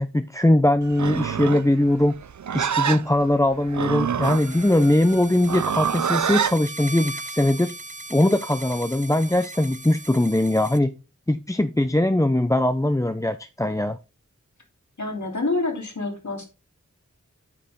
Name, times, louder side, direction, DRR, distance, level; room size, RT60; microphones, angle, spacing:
voice 1, 0.0-2.2 2.5-7.7 8.1-10.9 11.3-14.0, left 1 dB, 10° left, 0.6 m, -21 dB
Livestock farm animals working animals, 0.9-6.6, right 8 dB, 70° right, 0.5 m, -26 dB
sound 1, 4.2-10.8, right 2 dB, 25° right, 0.7 m, -38 dB
voice 2, 15.0-16.5, left 2 dB, 70° left, 3.0 m, -27 dB
9.1 x 6.6 x 3.6 m
wide cardioid pair, 40°, 30 cm